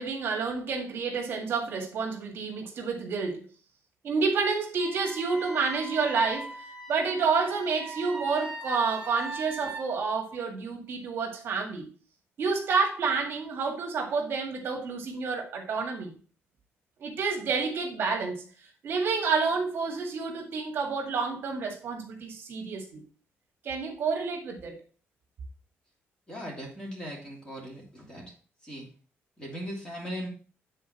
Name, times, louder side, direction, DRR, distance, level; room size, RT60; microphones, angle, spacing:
voice 1, 0.0-3.4 4.0-6.6 6.9-11.9 12.4-16.1 17.0-18.4 18.8-23.0 23.6-24.8, right 4 dB, 50° right, 2.0 m, -29 dB
Wind instrument woodwind instrument, 4.8-9.8, right 2 dB, 10° right, 1.9 m, -40 dB
voice 2, 26.3-28.3 28.6-28.9 29.4-30.3, equal, 15° left, 2.7 m, -38 dB
9.1 x 4.2 x 4.4 m
cardioid pair, 170°, 5 cm